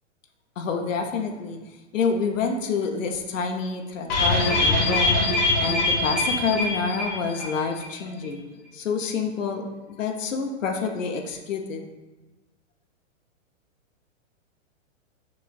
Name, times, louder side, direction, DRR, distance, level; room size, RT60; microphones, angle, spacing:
voice 1, 0.6-1.6 1.9-8.4 8.7-11.9, left 5 dB, 85° left, 3 dB, 0.7 m, -28 dB
sound 1, 4.1-7.6 7.8-7.9 8.2-8.3, left 2 dB, 25° left, 1.2 m, -23 dB
5.8 x 3.1 x 2.3 m, 1.1 s
hypercardioid pair, 145°, 38 cm